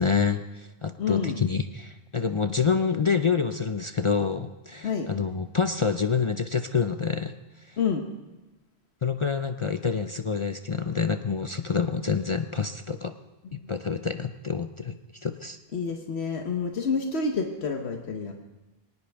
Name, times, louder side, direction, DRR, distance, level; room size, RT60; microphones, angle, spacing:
voice 1, 0.0-7.3 7.6-7.8 9.0-13.2 13.5-15.6, left 5 dB, 40° left, 8 dB, 0.5 m, -27 dB
voice 2, 1.0-1.4 4.8-5.1 7.8-8.0 13.5-13.7 15.7-18.3, left 5 dB, 80° left, 3 dB, 1.3 m, -28 dB
22.5 x 18.5 x 3.5 m, 1.1 s
omnidirectional pair, 1.1 m